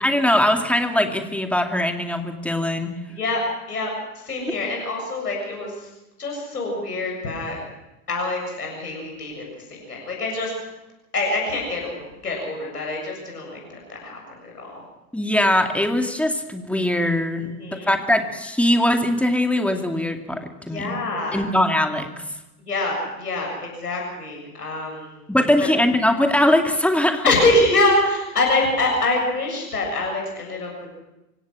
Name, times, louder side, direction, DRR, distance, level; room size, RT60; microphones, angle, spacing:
voice 1, 0.0-2.9 15.1-17.5 17.9-20.9 21.3-22.1 25.3-27.2, left 1 dB, 5° left, 5 dB, 2.3 m, -21 dB
voice 2, 3.1-3.4 3.7-5.9 6.2-7.6 8.1-10.6 11.1-12.0 12.2-14.8 17.4-17.9 20.6-21.4 22.6-25.2 25.6-25.7 27.2-30.7, left 2 dB, 80° left, 0 dB, 7.3 m, -25 dB
25.0 x 17.0 x 6.2 m, 0.96 s
figure-of-eight pair, 80°, 46 cm